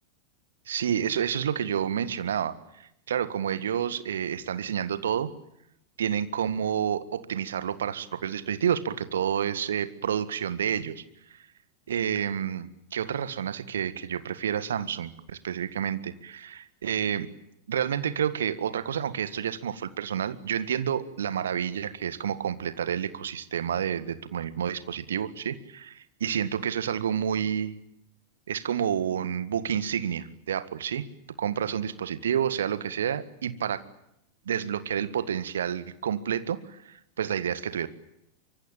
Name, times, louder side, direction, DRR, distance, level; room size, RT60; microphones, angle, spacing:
voice 1, 0.7-5.3 6.0-11.0 11.9-17.3 17.7-27.7 28.5-31.1 31.4-33.8 34.4-37.9, right 8 dB, 65° right, 14 dB, 1.7 m, -29 dB
24.5 x 24.0 x 9.1 m, 0.79 s
figure-of-eight pair, 90°, 0 cm